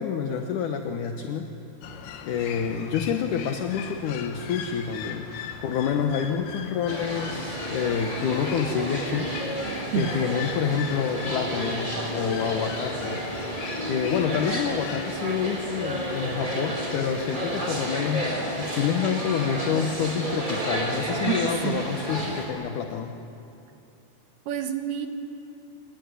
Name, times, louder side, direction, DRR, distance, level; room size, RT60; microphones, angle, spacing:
voice 1, 0.0-1.5 2.3-5.3 5.6-13.5 13.8-23.1, left 7 dB, 70° left, 5 dB, 2.0 m, -28 dB
sound 1, 1.8-15.2, left 7 dB, 90° left, 3.8 m, -39 dB
sound 2, 6.9-22.4, right 1 dB, 10° right, 3.3 m, -31 dB
voice 2, 21.2-21.8 24.5-25.1, right 10 dB, 70° right, 6 dB, 3.1 m, -28 dB
28.0 x 20.0 x 9.7 m, 2.8 s
omnidirectional pair, 5.0 m